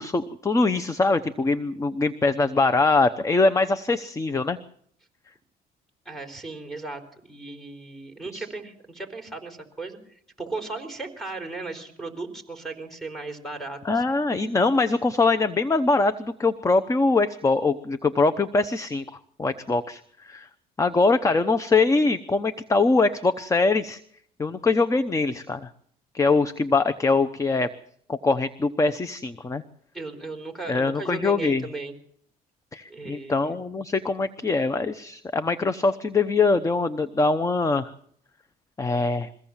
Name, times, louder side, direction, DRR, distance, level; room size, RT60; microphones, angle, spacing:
voice 1, 0.0-4.6 8.3-8.4 13.8-19.0 19.4-20.5 20.8-24.0 24.4-25.7 26.1-27.7 28.1-29.6 30.7-31.6 32.7-37.9 38.8-39.3, left 3 dB, 20° left, 11 dB, 0.8 m, -23 dB
voice 2, 6.1-10.0 10.4-14.0 29.9-31.9 32.9-33.4, right 3 dB, ahead, 1 dB, 4.2 m, -36 dB
22.5 x 16.5 x 7.2 m, 0.66 s
cardioid pair, 110°, 17 cm